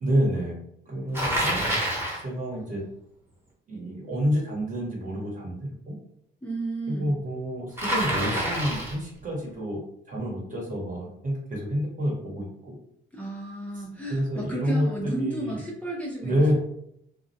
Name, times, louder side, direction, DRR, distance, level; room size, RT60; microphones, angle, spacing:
voice 1, 0.0-0.5 0.9-1.6 2.2-2.8 3.7-5.9 6.9-9.8 10.1-12.7 14.1-15.6 16.2-16.5, equal, 40° right, -2 dB, 1.0 m, -28 dB
Bicycle, 1.1-2.2 7.8-9.0, equal, 10° right, 0.9 m, -27 dB
voice 2, 6.4-7.2 13.1-16.5, right 1 dB, 5° left, -4 dB, 0.5 m, -33 dB
2.2 x 2.0 x 2.7 m, 0.73 s
cardioid pair, 90°, 20 cm